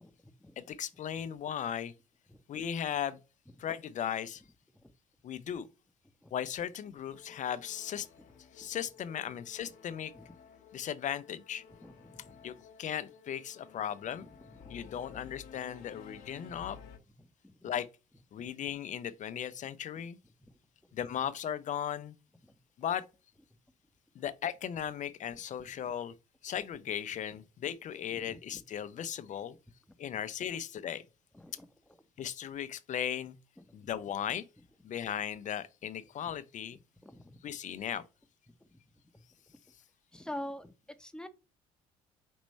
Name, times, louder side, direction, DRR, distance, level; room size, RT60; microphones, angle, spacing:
voice 1, 0.0-0.6 1.1-1.2 2.3-2.6 4.7-4.9 6.2-6.3 8.6-8.7 10.1-10.3 11.8-12.5 14.4-15.0 17.2-17.7 20.4-20.5 22.4-22.6 25.9-26.0 28.1-28.6 29.9-30.0 31.3-32.0 33.6-33.9 36.7-37.4 38.5-38.8 39.1-39.6 40.1-41.3, left 1 dB, 5° left, 0.7 m, -48 dB
voice 2, 0.6-1.9 2.5-3.2 3.6-4.4 5.2-5.7 6.3-8.1 8.5-10.1 10.7-11.6 12.4-14.3 14.7-16.8 17.6-17.9 18.3-20.2 20.9-22.2 22.8-23.1 24.1-26.1 26.4-29.5 30.0-31.0 32.2-33.3 33.7-34.4 34.8-36.8 37.4-38.0, left 9 dB, 40° left, 0.5 m, -37 dB
Singing / Musical instrument, 7.1-17.0, left 7 dB, 60° left, 1.0 m, -54 dB
5.3 x 3.0 x 3.2 m
hypercardioid pair, 55°, 19 cm